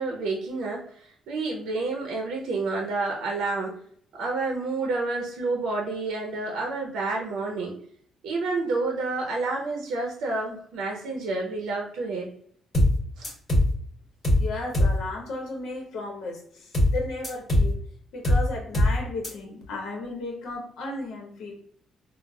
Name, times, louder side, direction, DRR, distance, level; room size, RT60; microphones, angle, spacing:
voice 1, 0.0-3.8 4.1-7.7 8.2-12.3 13.2-13.3, right 3 dB, 85° right, 0 dB, 0.6 m, -29 dB
sound 1, 12.7-13.0 13.2-13.7 14.2-14.5 14.7-15.0 16.7-17.0 17.2-17.7 18.2-18.5 18.7-19.0 19.2-19.3, left 1 dB, 30° left, 1.3 m, -20 dB
voice 2, 14.4-17.8 18.1-21.5, left 2 dB, 80° left, 1 dB, 0.8 m, -34 dB
3.9 x 2.0 x 2.3 m, 0.62 s
cardioid pair, 90°, 0 cm